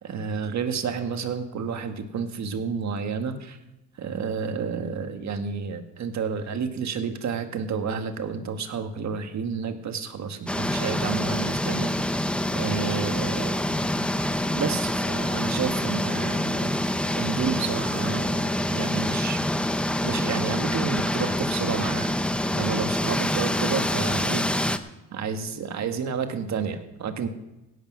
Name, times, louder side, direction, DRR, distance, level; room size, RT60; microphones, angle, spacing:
voice 1, 0.0-3.6 4.0-11.9 12.5-13.6 14.5-16.8 17.2-19.4 20.0-22.1 22.5-24.5 25.1-27.3, right 6 dB, 45° right, 7 dB, 1.6 m, -30 dB
sound 1, 10.5-24.8, left 1 dB, 5° left, 0.6 m, -26 dB
16.5 x 8.4 x 6.1 m, 0.95 s
cardioid pair, 135°, 38 cm